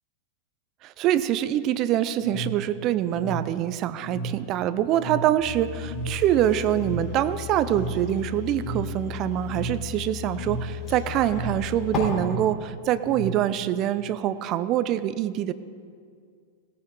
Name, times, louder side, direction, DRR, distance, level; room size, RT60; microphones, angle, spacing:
voice 1, 0.8-15.5, right 11 dB, 40° right, 15 dB, 0.5 m, -25 dB
sound 1, 2.2-13.8, right 3 dB, 70° left, 2.0 m, -35 dB
sound 2, 5.4-12.0, left 11 dB, 25° left, 3.5 m, -36 dB
17.5 x 9.1 x 3.8 m, 2.1 s
hypercardioid pair, 95°, 0 cm